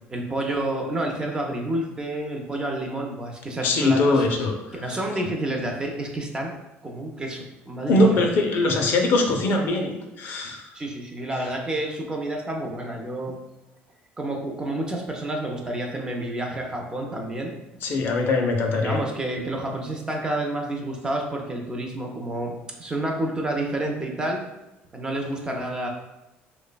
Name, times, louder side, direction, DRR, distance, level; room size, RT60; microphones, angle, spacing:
voice 1, 0.1-4.3 4.7-6.5 6.8-8.2 10.7-13.4 14.2-17.5 18.8-22.5 22.8-24.4 24.9-25.9, right 1 dB, 20° right, 1 dB, 0.4 m, -29 dB
voice 2, 3.6-4.5 7.9-10.7 17.8-19.0, left 2 dB, 55° left, 3 dB, 0.4 m, -21 dB
3.1 x 2.0 x 2.2 m, 0.98 s
cardioid pair, 135°, 4 cm